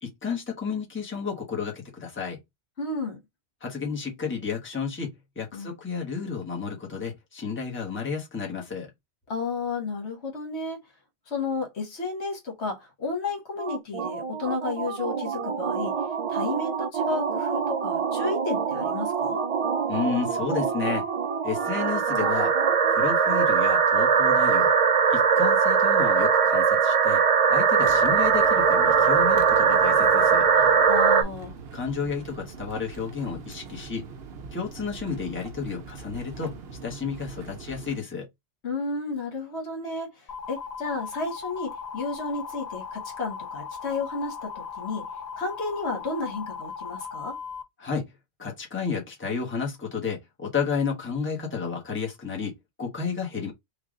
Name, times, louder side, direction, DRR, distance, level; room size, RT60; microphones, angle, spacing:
voice 1, 0.0-2.4 3.6-8.9 19.9-21.1 21.4-22.5 22.9-24.7 25.1-27.2 27.5-30.5 31.7-34.1 34.5-36.5 36.8-38.3 47.8-48.1 48.4-53.5, left 5 dB, 10° left, 1.0 m, -32 dB
voice 2, 2.8-3.2 5.5-5.7 9.3-10.8 11.3-16.0 16.3-19.4 30.5-31.6 38.6-45.1 45.4-47.4, left 3 dB, 75° left, 1.5 m, -32 dB
sound 1, 13.6-31.2, right 6 dB, 50° right, 0.4 m, -22 dB
sound 2, 27.8-38.0, right 5 dB, 70° right, 0.9 m, -42 dB
sound 3, 40.3-47.6, left 6 dB, 50° left, 0.5 m, -38 dB
3.3 x 2.4 x 3.7 m
omnidirectional pair, 1.1 m